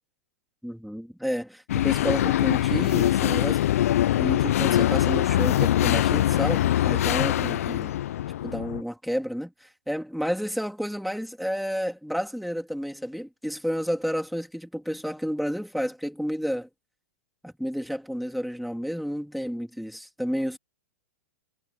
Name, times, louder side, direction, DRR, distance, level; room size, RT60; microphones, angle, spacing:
voice 1, 0.6-3.6 4.2-7.9 8.4-16.7 17.4-20.6, equal, ahead, 3.0 m, -31 dB
sound 1, 1.7-8.8, left 12 dB, 75° left, 0.4 m, -23 dB
hypercardioid pair, 145°, 8 cm